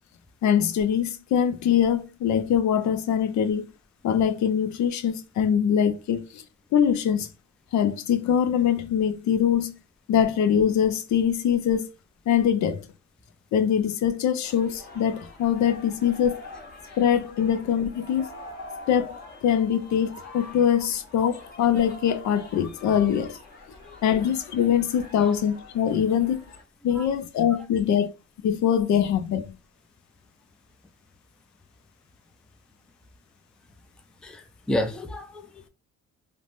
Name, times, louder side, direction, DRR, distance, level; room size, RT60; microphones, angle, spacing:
voice 1, 0.4-3.7 4.0-6.4 6.7-7.3 7.7-9.8 10.1-11.9 12.3-12.9 13.5-16.4 17.0-18.3 18.9-23.4 24.0-26.4 26.8-28.1 28.4-29.6, left 8 dB, 70° left, 0.5 m, -23 dB
sound 1, 14.4-26.6, left 2 dB, 30° left, 1.1 m, -44 dB
voice 2, 34.2-35.7, left 1 dB, 5° left, 0.4 m, -31 dB
3.2 x 2.1 x 2.5 m
cardioid pair, 90°, 30 cm